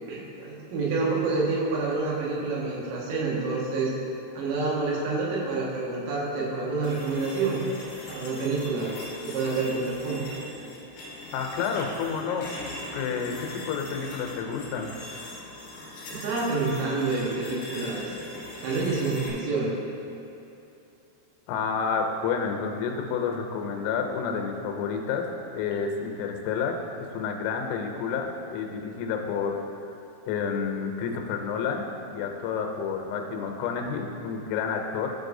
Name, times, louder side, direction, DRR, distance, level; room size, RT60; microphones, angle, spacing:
voice 1, 0.1-3.9 4.4-7.7 8.1-10.3 16.1-18.1 18.6-19.7, right 3 dB, 85° right, -5 dB, 3.6 m, -28 dB
sound 1, 6.8-19.3, left 1 dB, 65° left, 2.8 m, -41 dB
voice 2, 11.3-12.5 12.9-15.0 21.5-25.3 25.5-26.8 27.1-29.6 30.3-35.1, left 6 dB, 90° left, 3 dB, 3.3 m, -29 dB
13.0 x 4.7 x 2.6 m, 2.7 s
omnidirectional pair, 5.7 m